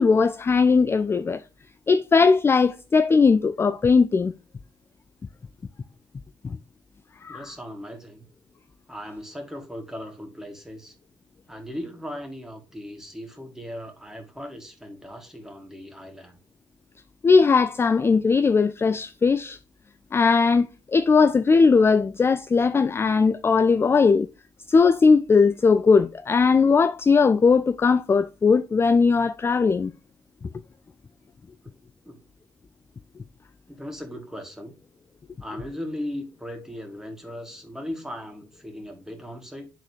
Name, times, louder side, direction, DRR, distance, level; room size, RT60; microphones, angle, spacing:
voice 1, 0.0-1.4 1.9-4.3 6.4-6.6 7.2-7.4 17.2-19.6 20.1-24.3 24.7-29.9, left 4 dB, 25° left, 0.4 m, -19 dB
voice 2, 7.3-8.3 8.9-10.9 11.5-16.4 32.1-32.2 33.7-34.7 35.4-39.7, equal, 5° right, 2.2 m, -37 dB
11.0 x 4.0 x 3.1 m
figure-of-eight pair, 40°, 10 cm